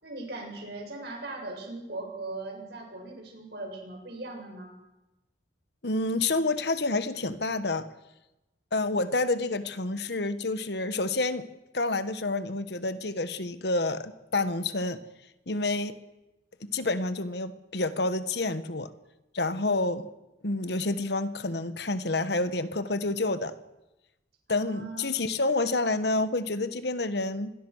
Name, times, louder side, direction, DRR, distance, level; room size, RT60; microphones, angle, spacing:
voice 1, 0.0-4.7 24.5-25.1, right 2 dB, 60° right, 1 dB, 7.6 m, -39 dB
voice 2, 5.8-7.9 8.7-11.5 11.7-15.0 15.5-15.9 16.6-18.9 19.3-20.1 20.4-23.5 24.5-27.5, left 2 dB, 60° left, 12 dB, 1.3 m, -28 dB
26.5 x 22.0 x 6.5 m, 1.0 s
head